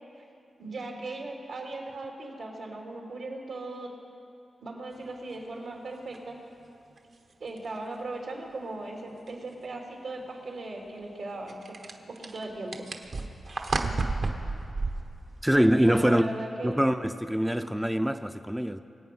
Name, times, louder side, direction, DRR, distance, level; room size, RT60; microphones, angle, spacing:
voice 1, 0.6-3.9 4.6-6.4 7.4-11.8 12.1-12.9 15.9-16.8, right 2 dB, 80° right, 2.9 m, -38 dB
sound 1, 6.1-6.2 7.0-7.1 7.6-7.7 9.3-9.4 11.5-15.7, right 3 dB, 60° right, 1.2 m, -32 dB
voice 2, 15.4-16.3 16.6-18.8, equal, 5° right, 0.4 m, -24 dB
24.0 x 8.6 x 5.5 m
cardioid pair, 80°, 0 cm